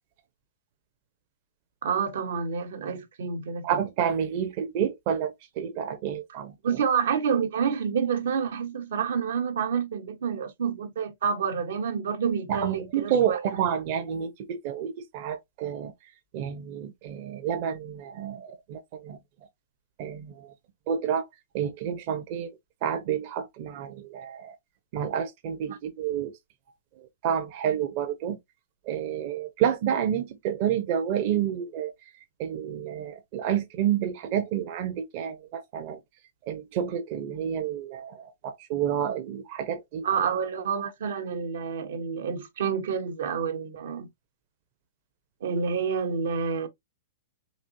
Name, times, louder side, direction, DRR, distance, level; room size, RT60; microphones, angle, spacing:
voice 1, 1.8-3.8 6.6-13.4 25.7-25.8 40.0-44.1 45.4-46.7, right 6 dB, 75° right, 1.1 m, -28 dB
voice 2, 3.6-6.5 12.5-15.9 16.3-19.2 20.0-20.5 20.9-21.2 21.5-24.5 24.9-26.3 27.0-28.4 28.9-31.9 32.4-36.0 36.5-40.0, right 9 dB, 50° right, 0.8 m, -29 dB
4.2 x 2.9 x 2.7 m
hypercardioid pair, 135°, 0 cm